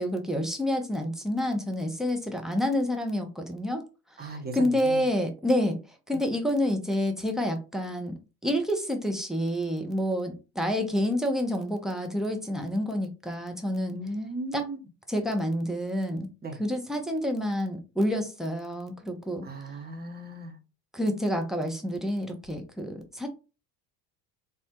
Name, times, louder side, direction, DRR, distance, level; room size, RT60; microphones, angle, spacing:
voice 1, 0.0-3.8 4.2-5.8 6.1-14.0 14.5-14.7 15.1-16.3 16.6-19.5 20.9-23.3, equal, ahead, 0.4 m, -28 dB
voice 2, 4.2-5.0 13.9-14.8 16.4-16.6 19.4-20.6, right 2 dB, 20° right, 0.8 m, -36 dB
3.5 x 2.1 x 2.7 m
figure-of-eight pair, 60°, 48 cm